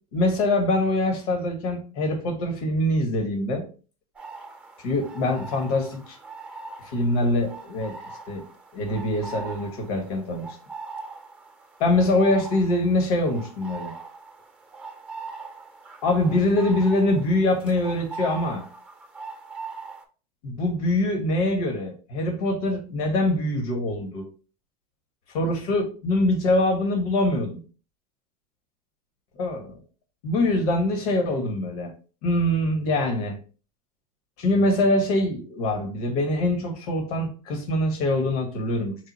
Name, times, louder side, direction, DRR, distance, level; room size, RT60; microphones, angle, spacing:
voice 1, 0.1-3.7 4.8-6.2 6.8-8.0 8.3-8.4 8.7-10.5 11.8-13.9 16.0-18.7 20.4-24.2 25.3-27.6 29.4-29.8 30.2-31.9 32.2-33.4 34.4-39.0, left 1 dB, 70° left, 1.4 m, -24 dB
sound 1, 4.1-20.0, right 4 dB, 5° right, 0.8 m, -41 dB
4.8 x 2.1 x 4.2 m
supercardioid pair, 120°, 20 cm